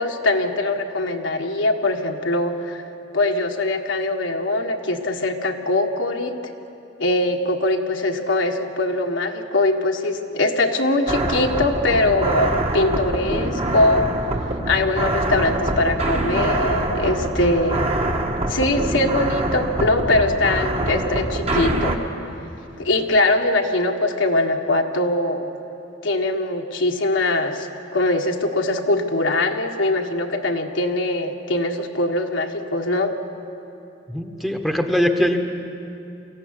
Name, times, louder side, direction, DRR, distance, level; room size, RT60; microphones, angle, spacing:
voice 1, 0.0-2.8 3.1-6.5 7.0-14.1 14.7-17.9 18.5-22.0 22.8-25.5 26.0-27.7 27.9-33.1, left 2 dB, 75° left, 3 dB, 1.6 m, -22 dB
sound 1, 11.1-22.0, right 1 dB, 30° right, 1.5 m, -24 dB
voice 2, 34.1-35.4, equal, ahead, 4 dB, 1.2 m, -21 dB
23.5 x 15.5 x 9.8 m, 2.8 s
head